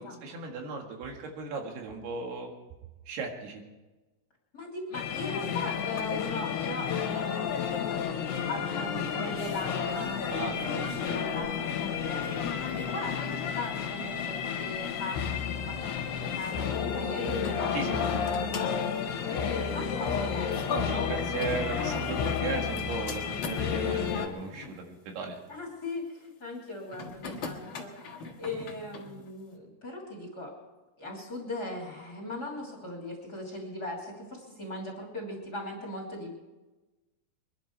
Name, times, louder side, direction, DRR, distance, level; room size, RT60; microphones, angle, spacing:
voice 1, 0.0-2.5 3.1-3.6 10.3-11.2 17.7-18.3 20.7-25.4, right 4 dB, 75° right, 2 dB, 3.9 m, -36 dB
voice 2, 4.5-7.7 8.5-10.7 11.0-18.7 19.2-20.5 20.8-22.0 24.5-24.7 25.5-30.5 31.0-36.3, left 2 dB, 25° left, 0 dB, 2.9 m, -39 dB
sound 1, 4.9-24.3, left 7 dB, 80° left, 3.5 m, -31 dB
sound 2, 9.9-23.7 24.4-24.8 26.9-29.3, left 5 dB, 55° left, 1.5 m, -44 dB
23.5 x 11.5 x 4.6 m, 1.2 s
omnidirectional pair, 4.6 m